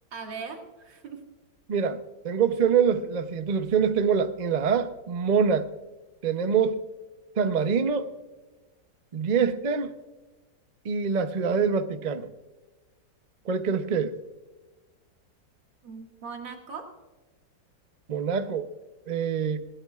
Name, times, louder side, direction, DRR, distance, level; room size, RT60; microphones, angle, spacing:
voice 1, 0.1-1.3 15.8-16.9, right 5 dB, 90° right, 2 dB, 2.7 m, -39 dB
voice 2, 2.2-5.7 6.2-6.8 7.4-8.1 9.1-9.9 10.8-12.3 13.5-14.2 18.1-18.7 19.1-19.6, right 6 dB, 60° right, 10 dB, 0.4 m, -25 dB
21.0 x 17.0 x 2.4 m, 1.2 s
omnidirectional pair, 1.9 m